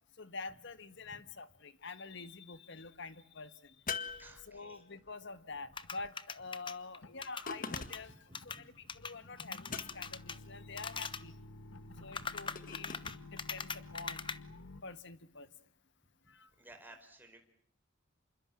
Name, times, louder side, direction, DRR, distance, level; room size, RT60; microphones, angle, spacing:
voice 1, 0.2-11.4 12.0-14.2 14.8-15.5 16.3-16.5, left 3 dB, 65° left, 12 dB, 1.6 m, -47 dB
sound 1, 3.9-5.0 7.5-8.2 9.7-10.3 12.5-13.2, left 5 dB, 45° left, 1.8 m, -42 dB
sound 2, 4.1-4.6 5.0-5.3 5.5-6.1 7.0-14.8, left 2 dB, 85° left, 1.5 m, -53 dB
voice 2, 4.2-4.8 8.1-8.6 9.3-9.4 12.0-12.2 16.6-17.4, right 1 dB, 10° right, 4 dB, 4.7 m, -56 dB
sound 3, 5.7-8.0 8.3-8.6 8.9-9.1 9.4-10.4 10.8-11.2 12.0-14.4, left 5 dB, 25° left, 1.0 m, -41 dB
27.5 x 24.0 x 7.6 m, 0.65 s
head